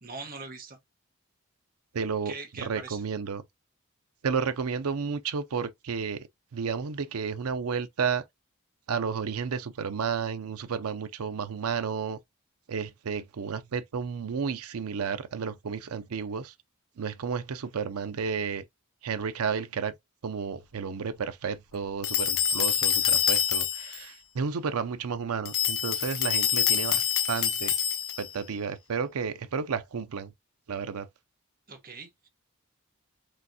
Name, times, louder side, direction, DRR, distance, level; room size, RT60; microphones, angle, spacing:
voice 1, 0.0-0.8 2.2-3.0 31.7-32.3, right 4 dB, 40° right, 1.2 m, -41 dB
voice 2, 1.9-3.4 4.2-8.2 8.9-12.2 12.7-16.5 17.0-18.6 19.0-19.9 20.2-27.8 28.2-30.3 30.7-31.1, right 6 dB, 90° right, 0.5 m, -32 dB
sound 1, 22.0-24.0 25.5-28.4, left 9 dB, 70° left, 0.7 m, -26 dB
4.9 x 3.4 x 2.8 m
head